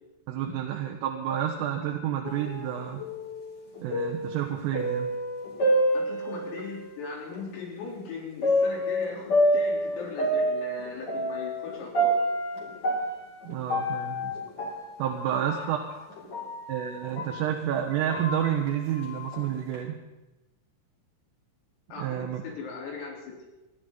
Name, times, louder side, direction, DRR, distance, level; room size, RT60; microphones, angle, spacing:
voice 1, 0.3-3.0 3.8-5.1 13.5-14.3 15.0-15.8 16.7-20.0 22.0-22.4, right 10 dB, 80° right, 0 dB, 3.7 m, -30 dB
sound 1, 2.2-6.9 7.3-7.4 8.4-17.5 17.9-19.7, equal, 40° left, 3.6 m, -28 dB
voice 2, 5.9-12.2 15.3-16.0 21.9-23.4, left 4 dB, 80° left, -2 dB, 6.4 m, -39 dB
28.0 x 11.5 x 4.0 m, 1.0 s
omnidirectional pair, 5.9 m